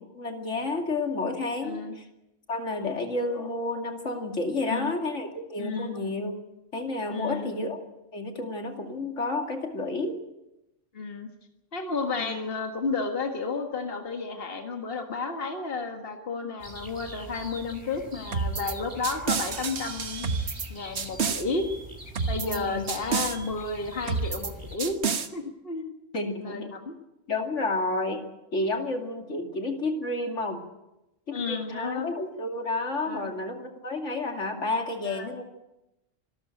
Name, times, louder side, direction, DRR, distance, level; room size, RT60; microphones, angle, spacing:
voice 1, 0.1-2.0 2.5-6.4 6.7-7.8 8.1-10.2 12.1-12.4 22.4-22.9 26.1-26.7 27.3-28.2 28.5-30.6 31.3-35.4, left 2 dB, 75° left, 4 dB, 2.8 m, -30 dB
voice 2, 1.6-2.0 4.6-4.9 5.6-5.9 7.1-7.5 10.9-11.3 11.7-20.3 20.7-21.7 22.3-25.0 25.3-25.9 26.4-27.0 31.3-32.1 33.1-33.3 35.0-35.3, left 4 dB, 50° left, 4 dB, 1.9 m, -32 dB
sound 1, 16.6-24.8, right 1 dB, 15° right, 3.9 m, -44 dB
sound 2, 18.3-18.7 19.0-20.7 21.0-21.4 22.2-22.6 22.9-23.4 24.1-24.5 24.8-25.3, right 5 dB, 65° right, 1.5 m, -29 dB
26.0 x 12.5 x 9.1 m, 0.93 s
omnidirectional pair, 1.3 m